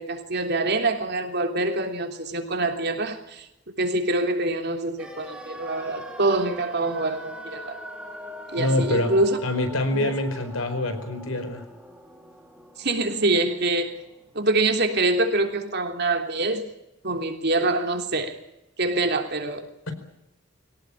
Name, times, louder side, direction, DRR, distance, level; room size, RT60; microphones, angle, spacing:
voice 1, 0.0-3.5 3.8-7.8 8.5-9.4 9.9-10.1 12.8-14.0 14.3-16.7 17.0-18.3 18.8-19.6, right 2 dB, 55° right, 4 dB, 3.3 m, -25 dB
sound 1, 5.0-14.9 15.2-15.3, right 1 dB, 5° right, 3.9 m, -42 dB
voice 2, 8.6-9.1 9.4-11.6, left 1 dB, 85° left, 8 dB, 4.7 m, -25 dB
23.0 x 18.0 x 10.0 m, 0.86 s
head